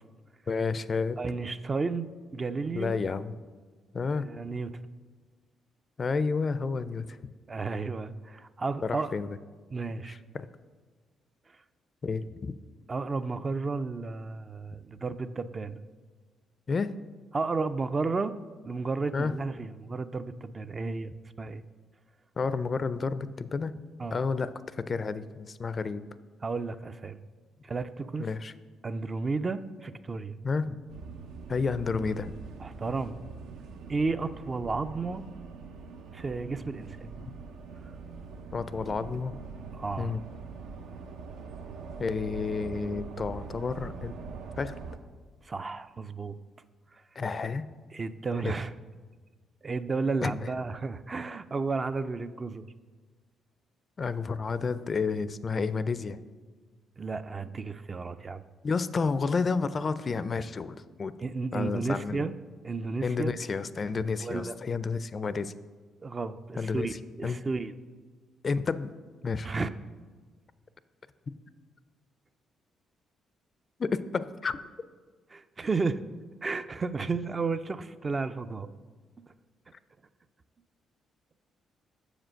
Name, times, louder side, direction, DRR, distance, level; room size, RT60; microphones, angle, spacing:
voice 1, 0.5-1.2 2.7-3.3 3.9-4.3 6.0-7.3 8.8-9.4 10.0-10.5 12.0-12.6 16.7-17.0 19.1-19.3 22.4-23.7 24.1-26.0 28.2-28.5 30.4-30.8 31.5-32.3 37.2-37.3 38.5-39.4 40.0-40.3 42.0-44.1 44.6-44.7 47.2-47.7 48.4-48.6 50.2-50.3 54.0-56.2 58.6-61.1 61.5-62.3 63.0-65.5 66.6-66.9 67.2-67.4 68.4-68.9 69.2-69.5 73.8-74.6, left 4 dB, 40° left, 14 dB, 0.4 m, -30 dB
voice 2, 1.2-2.9 4.2-4.7 7.5-9.1 9.7-10.1 12.9-15.8 17.3-18.4 18.6-21.1 21.4-21.6 24.0-24.2 26.4-27.2 27.6-28.3 28.8-30.4 32.6-33.2 33.9-35.2 36.1-37.1 39.7-40.2 45.4-46.4 47.9-48.7 49.6-52.7 57.0-58.4 61.2-62.3 62.6-63.3 64.2-64.5 66.0-67.7 69.4-69.7 75.3-76.0 76.4-78.7, right 4 dB, 35° right, 11 dB, 0.4 m, -32 dB
sound 1, 30.9-45.0, right 5 dB, 80° right, 0.6 m, -43 dB
7.2 x 5.1 x 6.3 m, 1.4 s
cardioid pair, 75°, 0 cm